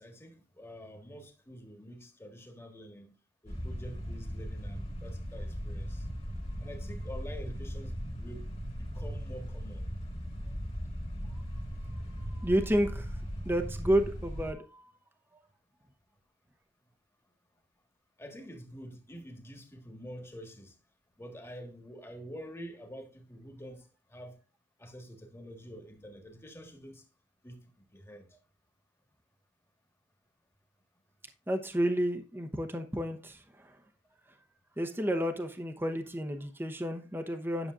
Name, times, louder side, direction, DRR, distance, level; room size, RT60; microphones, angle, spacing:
voice 1, 0.0-3.1 3.4-6.1 6.6-8.5 8.8-9.9 18.2-20.8 21.2-24.4 24.8-27.0 27.4-27.6 27.9-28.3, equal, 15° left, 1.5 m, -47 dB
sound 1, 3.5-14.5, equal, 35° left, 1.9 m, -38 dB
voice 2, 11.7-13.2 13.4-14.9 31.5-33.8 34.8-37.7, equal, 10° right, 0.9 m, -31 dB
10.0 x 6.7 x 2.5 m
head